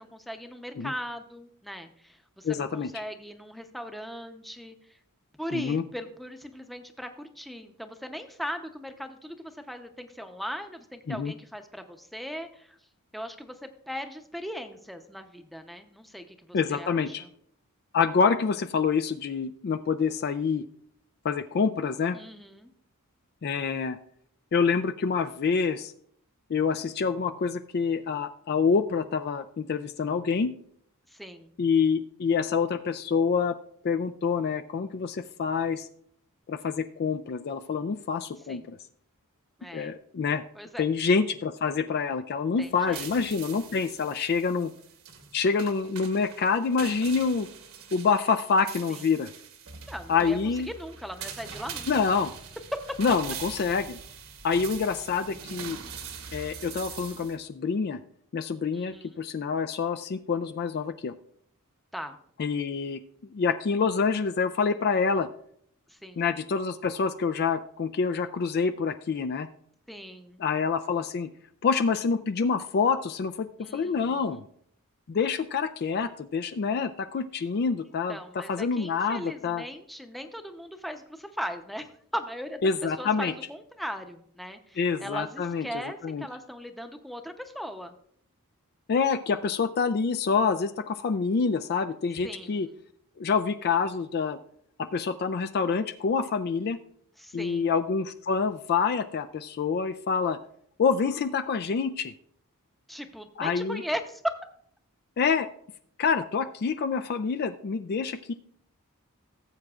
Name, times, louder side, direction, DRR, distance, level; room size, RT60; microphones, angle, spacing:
voice 1, 0.0-5.0 5.4-12.8 13.1-17.3 22.1-22.7 31.1-31.5 38.5-38.7 39.6-39.9 40.5-40.9 42.6-43.1 48.9-49.0 49.8-50.4 50.7-51.9 52.7-52.8 58.7-59.2 61.9-62.2 65.9-66.2 69.9-70.4 73.6-74.4 78.1-87.9 92.2-92.8 97.2-97.7 102.9-104.4, equal, ahead, 6 dB, 0.7 m, -38 dB
voice 2, 2.4-2.9 5.5-5.8 11.1-11.3 16.5-17.2 17.9-20.6 21.2-22.2 23.4-24.0 24.5-25.9 26.5-30.5 31.6-33.6 33.8-35.9 36.5-38.8 39.7-40.4 40.8-44.7 45.3-47.5 47.9-49.3 50.1-50.7 51.9-52.3 53.0-54.0 54.4-55.8 56.3-58.0 58.3-61.1 62.4-63.0 63.3-65.3 66.2-69.5 70.4-71.3 71.6-73.5 73.7-74.4 75.1-79.6 82.6-83.3 84.8-86.3 88.9-92.7 93.2-94.4 94.9-96.8 97.3-100.4 100.8-102.1 103.4-103.8 105.2-105.5 106.0-108.3, left 5 dB, 45° left, 10 dB, 0.3 m, -27 dB
sound 1, 42.6-57.4, right 6 dB, 65° right, 1.3 m, -43 dB
17.5 x 7.6 x 2.4 m, 0.66 s
head